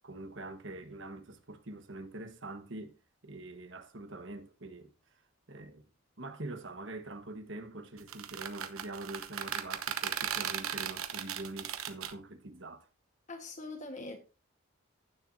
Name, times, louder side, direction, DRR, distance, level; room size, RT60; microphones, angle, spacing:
voice 1, 0.0-3.0 3.2-4.9 5.5-5.9 6.2-12.9, right 2 dB, 60° right, 1.3 m, -44 dB
sound 1, 8.0-12.1, right 9 dB, 80° right, 1.0 m, -36 dB
voice 2, 13.3-14.2, left 2 dB, 35° left, 1.4 m, -42 dB
16.0 x 7.3 x 2.7 m
head